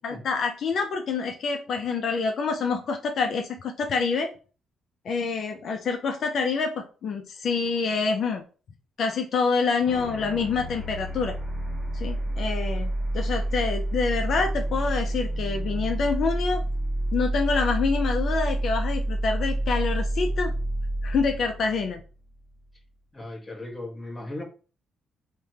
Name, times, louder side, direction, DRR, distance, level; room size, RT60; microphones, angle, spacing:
voice 1, 0.0-4.3 5.0-8.4 9.0-11.3 11.9-16.6 17.1-20.5 21.0-22.0, left 4 dB, 60° left, 0.4 m, -27 dB
sound 1, 9.9-22.6, right 1 dB, 15° right, 0.7 m, -28 dB
voice 2, 23.1-24.4, left 2 dB, 15° left, 0.9 m, -37 dB
3.2 x 2.1 x 2.8 m
cardioid pair, 90°, 0 cm